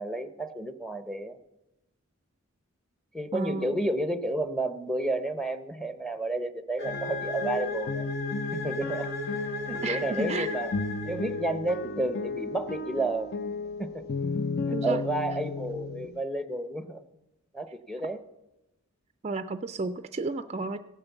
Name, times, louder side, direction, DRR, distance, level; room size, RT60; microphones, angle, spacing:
voice 1, 0.0-1.4 3.1-8.1 8.5-9.1 9.7-10.7 11.0-13.3 13.8-14.0 14.7-17.0 17.5-18.2, right 2 dB, ahead, 10 dB, 0.7 m, -31 dB
voice 2, 3.3-3.7 9.8-10.6 14.7-15.0 19.2-20.8, right 3 dB, 30° right, 11 dB, 0.4 m, -32 dB
sound 1, 6.8-11.7, left 2 dB, 65° left, 3.3 m, -36 dB
sound 2, 6.8-16.2, left 4 dB, 50° left, 0.5 m, -34 dB
16.5 x 8.9 x 7.1 m, 0.95 s
head